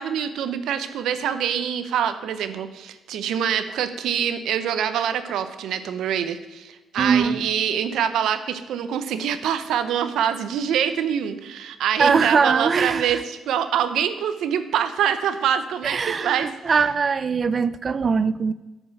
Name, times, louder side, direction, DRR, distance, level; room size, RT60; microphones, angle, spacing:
voice 1, 0.0-16.5, right 9 dB, 80° right, 11 dB, 0.6 m, -25 dB
voice 2, 7.0-7.4 12.0-13.2 15.8-18.5, right 5 dB, 40° right, 15 dB, 0.3 m, -21 dB
9.3 x 5.4 x 6.7 m, 1.1 s
cardioid pair, 90°, 0 cm